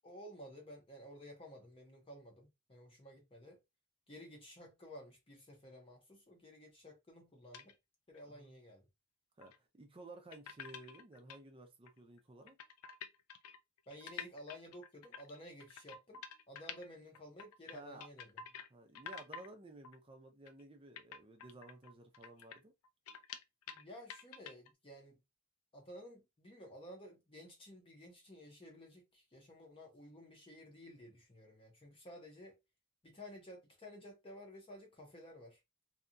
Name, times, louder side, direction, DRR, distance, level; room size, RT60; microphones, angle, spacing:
voice 1, 0.0-3.6 4.1-7.7 8.1-8.8 13.9-18.4 23.7-25.2 25.7-32.6 33.0-35.6, equal, 25° left, 0.7 m, -54 dB
sound 1, 7.5-7.7 8.1-8.2 9.4-9.6 10.3-11.4 11.9-12.0 12.2-12.3 12.5-16.9 17.1-18.7 19.0-19.5 19.8-20.0 20.5-20.6 21.0-23.8 24.1-24.7, left 7 dB, 75° left, 0.4 m, -49 dB
voice 2, 9.4-12.6 17.7-18.1 18.4-22.7, right 2 dB, 25° right, 0.5 m, -55 dB
2.8 x 2.3 x 2.5 m
head